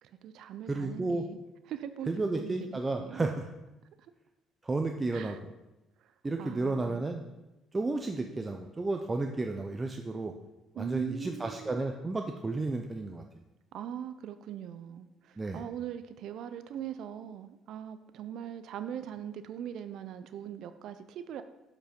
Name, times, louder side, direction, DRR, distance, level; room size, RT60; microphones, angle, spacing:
voice 1, 0.0-1.4 1.7-3.3 4.0-4.1 5.1-5.4 6.0-7.0 10.7-11.8 13.7-21.4, right 9 dB, 70° right, 11 dB, 0.4 m, -41 dB
voice 2, 0.7-1.2 2.1-3.5 4.6-5.4 6.2-7.2 7.7-10.3 10.8-13.2 15.4-15.6, right 3 dB, 25° right, 4 dB, 0.6 m, -32 dB
7.4 x 5.2 x 5.2 m, 1.0 s
supercardioid pair, 80°, 0 cm